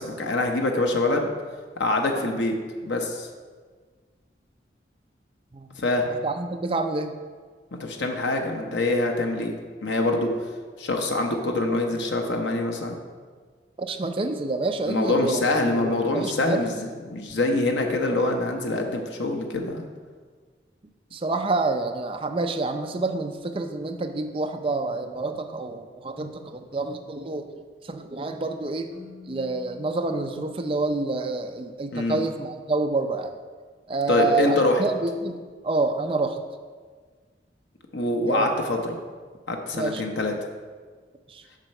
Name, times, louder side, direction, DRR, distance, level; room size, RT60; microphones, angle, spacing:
voice 1, 0.0-1.3 1.8-2.5 2.8-3.3 5.8-6.1 7.8-9.5 9.8-10.3 10.8-12.9 14.9-19.8 31.9-32.2 34.1-34.8 37.9-39.0 39.5-40.3, left 2 dB, 85° left, 3 dB, 0.8 m, -25 dB
voice 2, 6.1-7.1 13.8-15.4 15.8-16.6 21.1-27.4 27.9-28.9 29.3-33.3 33.9-36.4 38.2-38.5 39.7-40.0 41.3-41.4, right 3 dB, 30° right, 5 dB, 0.5 m, -28 dB
Keyboard (musical), 28.9-31.7, left 4 dB, 30° left, 1.9 m, -49 dB
7.4 x 4.3 x 6.5 m, 1.5 s
head